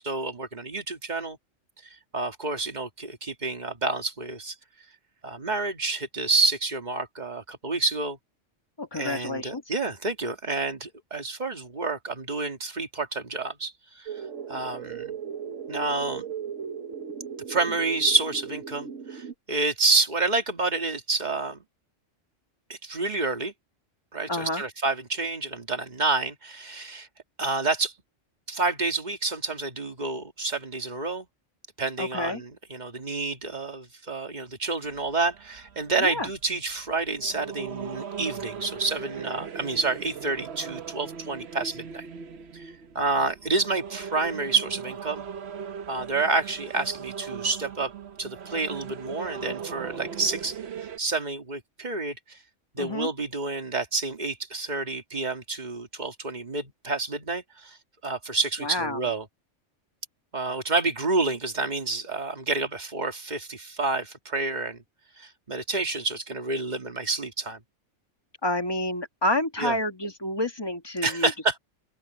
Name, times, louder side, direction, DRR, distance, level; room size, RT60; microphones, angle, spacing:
voice 1, 0.0-1.4 2.1-4.6 5.2-8.2 8.9-15.2 15.7-16.3 17.5-21.6 22.7-23.5 24.1-27.1 27.4-27.9 28.5-31.3 31.8-42.1 42.5-45.2 45.9-47.9 48.2-52.4 52.7-57.8 58.0-59.3 60.3-64.8 65.2-67.6 69.6-69.8 71.0-71.6, right 3 dB, 35° right, 2.1 m, -29 dB
voice 2, 8.8-9.6 24.3-24.6 32.0-32.4 36.0-36.3 52.8-53.1 58.6-59.0 68.4-71.3, left 1 dB, 20° left, 1.6 m, -29 dB
sound 1, 14.1-19.3, right 7 dB, 85° right, 1.6 m, -37 dB
sound 2, 34.8-51.0, right 7 dB, 60° right, 1.1 m, -39 dB
open air
omnidirectional pair, 1.3 m